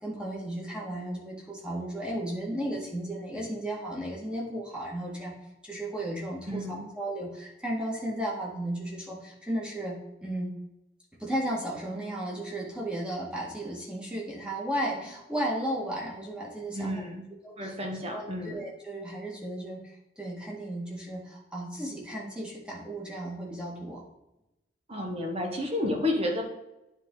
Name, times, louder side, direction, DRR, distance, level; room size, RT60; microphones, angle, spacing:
voice 1, 0.0-5.4 5.6-10.5 11.2-17.0 17.4-17.7 18.1-24.0, right 1 dB, 5° right, -4 dB, 1.8 m, -34 dB
voice 2, 6.5-6.9 16.7-17.3 17.6-18.6 24.9-26.4, left 1 dB, 35° right, 2 dB, 1.3 m, -31 dB
9.9 x 4.4 x 3.9 m, 0.91 s
head